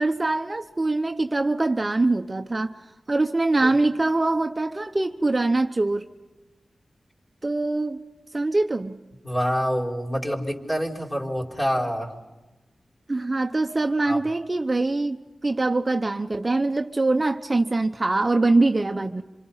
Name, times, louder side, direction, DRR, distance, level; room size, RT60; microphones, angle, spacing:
voice 1, 0.0-2.7 3.1-6.0 7.4-9.0 13.1-19.2, right 2 dB, 35° right, 6 dB, 0.9 m, -23 dB
voice 2, 9.2-12.1 14.0-14.2, equal, 20° left, -1 dB, 4.5 m, -26 dB
27.5 x 26.5 x 5.7 m, 1.1 s
cardioid pair, 55°, 0 cm